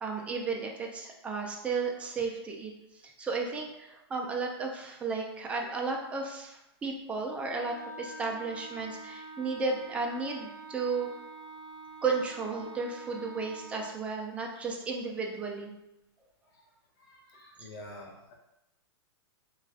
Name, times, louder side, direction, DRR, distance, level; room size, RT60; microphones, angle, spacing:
voice 1, 0.0-2.7 3.0-11.1 12.0-15.7 17.6-17.7, right 4 dB, 10° right, 0 dB, 0.3 m, -34 dB
Wind instrument woodwind instrument, 7.5-13.9, right 3 dB, 30° left, 1.4 m, -46 dB
voice 2, 17.0-18.3, left 1 dB, 55° left, -1 dB, 0.9 m, -48 dB
4.6 x 2.4 x 2.3 m, 0.88 s
hypercardioid pair, 155°, 14 cm